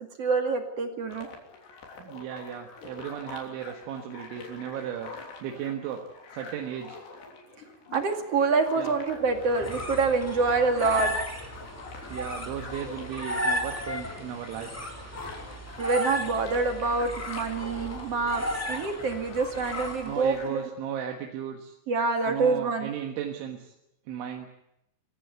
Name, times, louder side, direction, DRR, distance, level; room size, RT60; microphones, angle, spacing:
voice 1, 0.2-1.3 7.9-11.1 15.8-20.7 21.9-22.9, right 4 dB, 45° right, 5 dB, 2.5 m, -26 dB
sound 1, 1.1-20.7, left 4 dB, 65° left, 5.4 m, -46 dB
voice 2, 2.0-5.1 5.4-6.0 6.3-7.0 8.8-8.9 12.1-14.7 20.0-21.8 22.3-23.7 24.1-24.5, right 9 dB, 85° right, 2 dB, 4.0 m, -35 dB
sound 2, 9.3-20.4, equal, 5° left, 2.4 m, -34 dB
25.0 x 16.0 x 9.4 m, 0.85 s
omnidirectional pair, 5.3 m